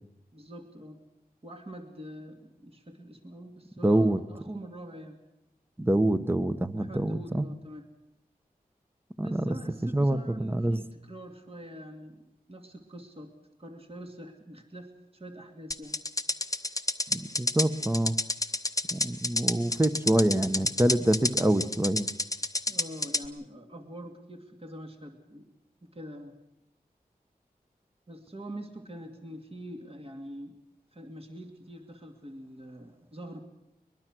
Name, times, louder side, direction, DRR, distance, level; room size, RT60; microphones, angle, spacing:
voice 1, 0.3-1.0 1.4-5.2 6.8-7.9 9.2-12.2 12.5-13.3 13.6-16.0 22.7-25.5 25.8-26.4 28.1-30.6 30.9-33.4, right 1 dB, 35° right, 4 dB, 2.3 m, -44 dB
voice 2, 3.8-4.2 5.8-7.4 9.2-9.5 9.9-10.8 17.1-18.2 18.9-22.1, right 1 dB, 15° right, 11 dB, 1.1 m, -26 dB
sound 1, 15.7-23.3, left 2 dB, 20° left, 1.0 m, -29 dB
23.0 x 21.5 x 6.2 m, 0.84 s
wide cardioid pair, 65°, 16 cm